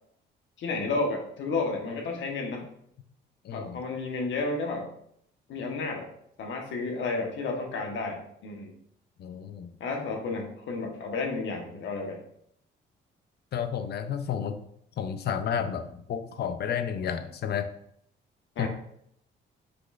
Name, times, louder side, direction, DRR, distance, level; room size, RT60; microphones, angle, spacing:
voice 1, 0.6-2.6 3.5-4.9 5.5-6.1 6.4-8.7 9.8-12.2 18.6-18.7, left 3 dB, 75° left, 2 dB, 1.0 m, -31 dB
voice 2, 3.4-3.8 9.2-9.7 13.5-14.6 15.0-17.7 18.6-18.7, left 8 dB, 55° left, 9 dB, 0.5 m, -31 dB
6.1 x 3.1 x 2.4 m, 0.69 s
cardioid pair, 90°, 20 cm